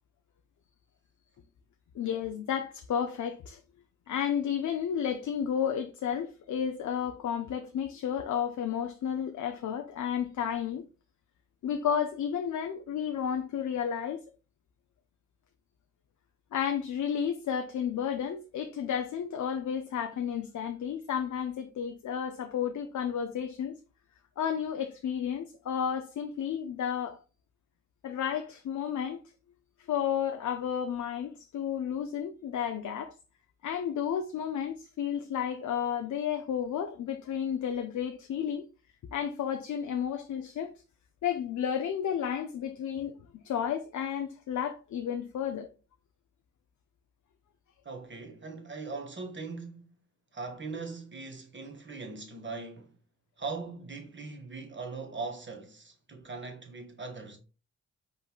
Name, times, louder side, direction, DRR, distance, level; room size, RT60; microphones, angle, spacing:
voice 1, 1.9-3.6 4.1-10.8 11.6-14.2 16.5-23.8 24.4-27.2 28.0-29.2 29.9-33.1 33.6-38.7 39.1-40.7 41.2-43.2 43.4-45.7, left 8 dB, 70° left, 0.6 m, -32 dB
voice 2, 47.8-49.9 50.3-52.9 53.4-57.4, right 4 dB, 40° right, 1.4 m, -40 dB
5.2 x 3.8 x 2.3 m
cardioid pair, 60°, 30 cm